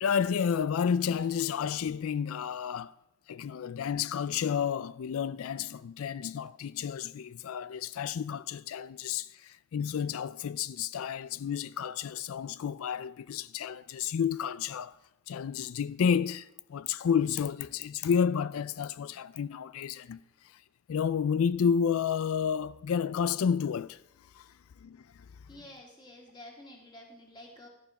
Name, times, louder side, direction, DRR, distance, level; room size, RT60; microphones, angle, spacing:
voice 1, 0.0-3.0 3.3-15.0 15.3-20.2 20.4-20.6 20.9-24.0 24.3-24.5 24.8-25.0 25.5-25.6, left 7 dB, 70° left, 0.4 m, -31 dB
voice 2, 25.5-27.7, left 1 dB, 20° left, 2.7 m, -50 dB
12.0 x 7.1 x 5.8 m
head